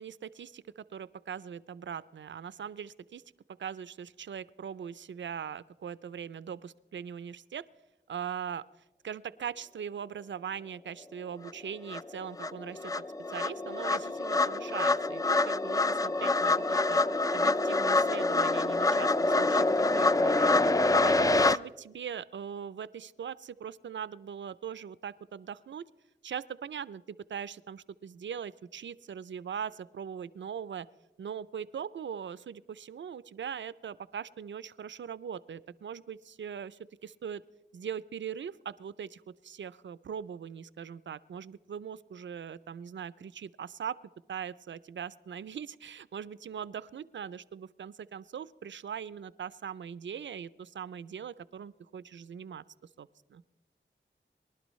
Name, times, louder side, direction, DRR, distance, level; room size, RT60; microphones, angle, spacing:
voice 1, 0.0-3.2 3.6-7.7 8.1-8.7 9.0-12.9 13.3-17.0 17.3-19.7 19.9-25.9 26.2-30.9 31.2-37.4 37.7-44.0 44.3-52.6 53.0-53.4, right 8 dB, 70° right, 17 dB, 0.4 m, -41 dB
sound 1, 11.5-11.6 11.9-21.6, left 2 dB, 20° left, 0.3 m, -26 dB
23.0 x 11.5 x 3.1 m, 1.1 s
cardioid pair, 50°, 20 cm